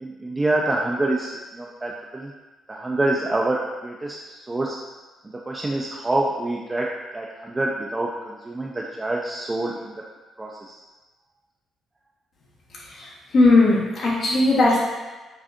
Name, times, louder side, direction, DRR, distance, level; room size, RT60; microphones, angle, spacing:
voice 1, 0.0-2.3 2.7-4.8 5.5-9.9 10.4-10.8, right 2 dB, 20° right, -3 dB, 0.4 m, -26 dB
voice 2, 13.3-14.8, left 2 dB, 55° left, -6 dB, 1.1 m, -17 dB
4.9 x 2.4 x 2.6 m, 1.2 s
cardioid pair, 90°, 0 cm